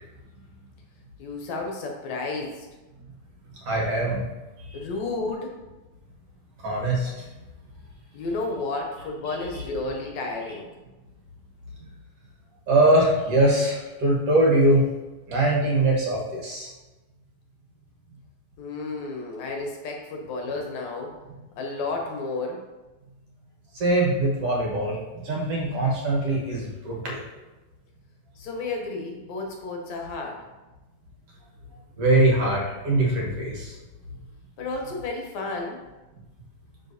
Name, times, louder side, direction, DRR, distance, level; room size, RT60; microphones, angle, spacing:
voice 1, 1.2-2.7 4.7-5.5 8.1-10.7 18.6-21.1 21.6-22.6 28.4-30.4 34.6-35.8, left 3 dB, 70° left, 1 dB, 2.0 m, -32 dB
voice 2, 3.6-4.3 4.6-4.8 6.6-7.3 9.3-9.6 12.7-14.8 15.3-16.7 23.7-27.2 32.0-33.7, right 1 dB, 60° right, -3 dB, 2.1 m, -22 dB
12.0 x 4.7 x 2.7 m, 1.1 s
omnidirectional pair, 3.5 m